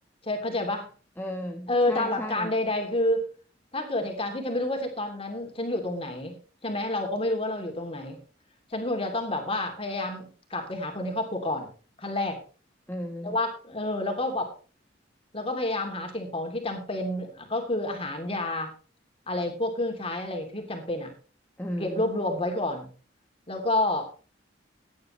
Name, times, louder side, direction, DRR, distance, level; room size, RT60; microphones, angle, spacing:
voice 1, 0.2-0.9 1.7-3.2 3.7-6.3 6.6-8.2 8.7-11.7 12.0-12.4 13.2-14.5 15.3-18.7 19.3-21.1 21.8-22.9 23.5-24.1, left 1 dB, 30° left, 4 dB, 3.0 m, -29 dB
voice 2, 1.2-2.5 12.9-13.4 21.6-22.1, equal, 10° left, 1 dB, 1.1 m, -35 dB
16.0 x 10.5 x 3.2 m, 0.36 s
head